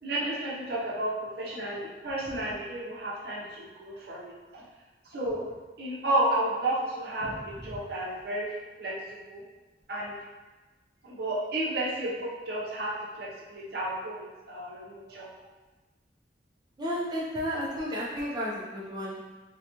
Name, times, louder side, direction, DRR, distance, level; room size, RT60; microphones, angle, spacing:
voice 1, 0.0-4.6 5.1-5.4 5.8-8.5 8.8-8.9 9.3-9.4 9.9-10.1 11.0-15.3, right 1 dB, 60° right, -5 dB, 0.8 m, -32 dB
voice 2, 16.8-19.2, equal, 25° right, -6 dB, 0.6 m, -32 dB
3.9 x 2.2 x 2.9 m, 1.2 s
head